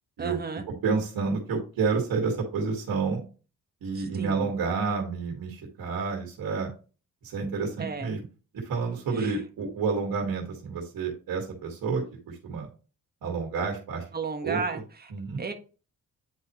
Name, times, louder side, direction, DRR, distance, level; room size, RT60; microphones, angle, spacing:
voice 1, 0.2-0.7 3.9-4.5 7.8-8.1 9.1-9.4 14.1-15.1 15.4-15.5, right 4 dB, 30° right, 5 dB, 1.4 m, -34 dB
voice 2, 0.8-3.2 3.8-6.7 7.3-8.2 8.7-12.7 13.2-14.0 14.4-14.6 15.1-15.4, right 5 dB, 85° right, 1 dB, 2.0 m, -29 dB
9.5 x 4.2 x 3.1 m, 0.34 s
cardioid pair, 80°, 34 cm